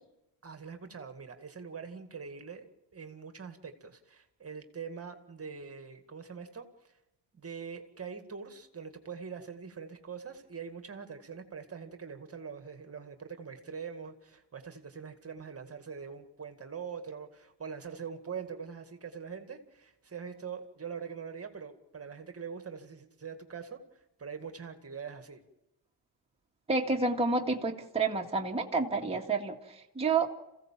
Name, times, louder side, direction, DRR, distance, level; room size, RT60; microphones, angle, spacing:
voice 1, 0.4-7.0 7.3-25.4, right 6 dB, 30° right, 7 dB, 2.1 m, -43 dB
voice 2, 26.7-30.3, right 3 dB, 15° right, 0 dB, 2.1 m, -29 dB
27.5 x 16.0 x 7.5 m, 0.93 s
cardioid pair, 90°, 44 cm